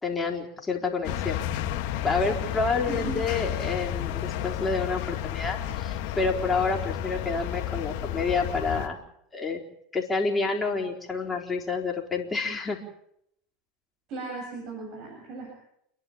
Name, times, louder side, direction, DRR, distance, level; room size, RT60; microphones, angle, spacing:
voice 1, 0.0-1.5 2.0-9.0 9.3-9.6 9.9-12.8, left 4 dB, 15° left, 0 dB, 4.3 m, -28 dB
sound 1, 1.0-8.9, left 11 dB, 65° left, 2.0 m, -31 dB
voice 2, 2.9-3.2 14.1-15.5, right 3 dB, 55° right, 0 dB, 7.8 m, -36 dB
29.0 x 11.0 x 8.9 m, 0.75 s
supercardioid pair, 110°, 0 cm